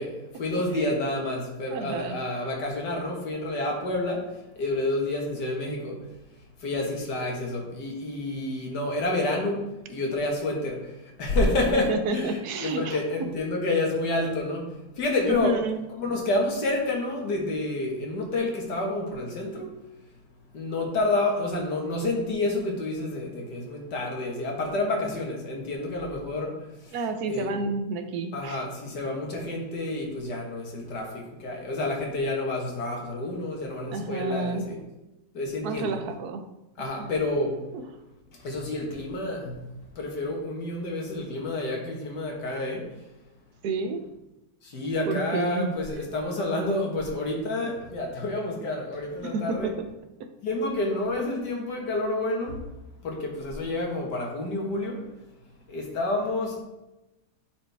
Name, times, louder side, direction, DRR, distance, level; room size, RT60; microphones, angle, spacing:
voice 1, 0.0-6.0 6.6-14.7 15.0-15.5 16.0-19.7 20.5-27.0 27.3-27.6 28.3-34.8 35.3-36.0 36.8-37.6 38.4-39.6 40.0-42.9 44.6-49.7 50.4-52.6 53.0-55.0 55.7-56.6, left 2 dB, 85° left, 0 dB, 2.1 m, -29 dB
voice 2, 1.7-2.2 11.7-13.3 15.2-15.8 26.9-28.6 33.9-34.7 35.6-36.5 36.8-36.9 37.7-37.9 43.6-44.1 45.1-45.8 47.6-47.8 49.2-49.9 50.2-50.3, right 3 dB, 75° right, 7 dB, 1.2 m, -30 dB
10.5 x 4.4 x 3.5 m, 0.98 s
omnidirectional pair, 1.7 m